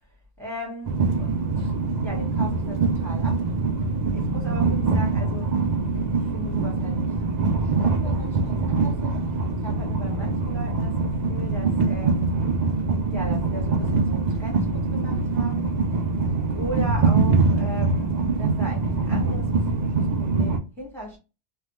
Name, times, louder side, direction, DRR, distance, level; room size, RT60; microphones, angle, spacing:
voice 1, 0.4-1.7 2.0-3.5 4.1-5.6 6.0-7.2 7.6-12.4 13.1-21.2, equal, ahead, 1.3 m, -38 dB
Train, 0.9-20.6, right 3 dB, 55° right, 0.5 m, -24 dB
3.4 x 2.2 x 3.0 m
omnidirectional pair, 1.2 m